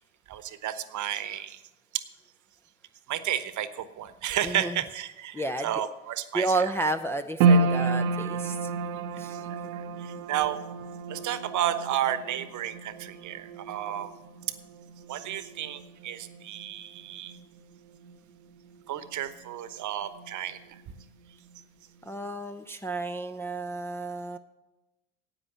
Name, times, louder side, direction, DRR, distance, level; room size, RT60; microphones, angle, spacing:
voice 1, 0.3-1.6 3.1-6.7 9.7-10.6 11.1-14.1 15.1-17.3 18.9-20.6, right 11 dB, 45° right, 13 dB, 1.1 m, -32 dB
voice 2, 4.4-4.8 5.3-5.7 6.3-8.7 9.2-9.4 22.0-24.4, right 2 dB, 5° left, 5 dB, 0.5 m, -31 dB
sound 1, 7.4-19.8 20.1-21.0 21.5-21.6, right 4 dB, 75° right, 0.9 m, -31 dB
9.9 x 8.8 x 8.0 m, 1.0 s
hypercardioid pair, 75°, 41 cm